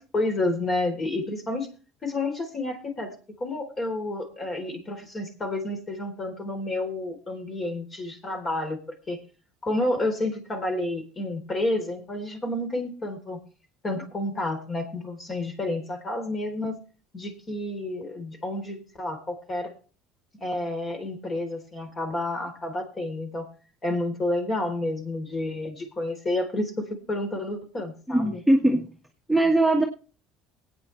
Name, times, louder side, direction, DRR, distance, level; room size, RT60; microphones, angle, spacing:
voice 1, 0.0-1.7 2.0-3.1 3.4-8.8 9.1-9.2 9.6-13.4 13.8-16.8 17.1-19.7 20.4-23.5 23.8-28.4, left 2 dB, 30° left, 5 dB, 3.8 m, -30 dB
voice 2, 28.1-28.9 29.3-29.8, right 1 dB, 5° left, 1 dB, 1.8 m, -20 dB
20.5 x 9.1 x 3.3 m, 0.38 s
supercardioid pair, 95°, 0 cm